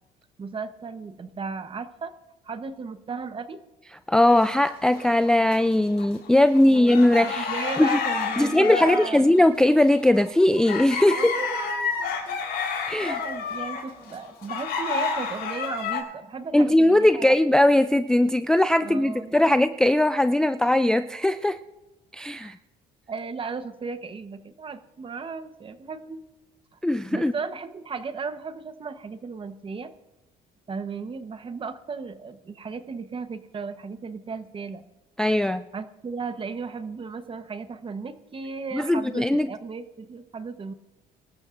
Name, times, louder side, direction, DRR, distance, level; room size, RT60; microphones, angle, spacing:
voice 1, 0.4-2.1 2.4-3.6 6.7-9.3 11.1-12.6 13.0-17.3 18.8-19.6 22.4-22.6 23.1-26.2 26.7-26.8 27.1-29.9 30.7-34.8 35.7-40.7, right 5 dB, 30° right, 10 dB, 1.0 m, -35 dB
voice 2, 4.1-7.5 7.8-8.0 8.4-11.3 12.9-13.2 16.5-21.6 22.1-22.6 26.8-27.3 35.2-35.7 38.7-39.5, left 1 dB, 5° left, 10 dB, 0.3 m, -20 dB
sound 1, 4.3-5.6 6.0-16.0, left 5 dB, 75° left, 3.9 m, -30 dB
24.5 x 13.0 x 2.5 m, 1.1 s
cardioid pair, 110°, 17 cm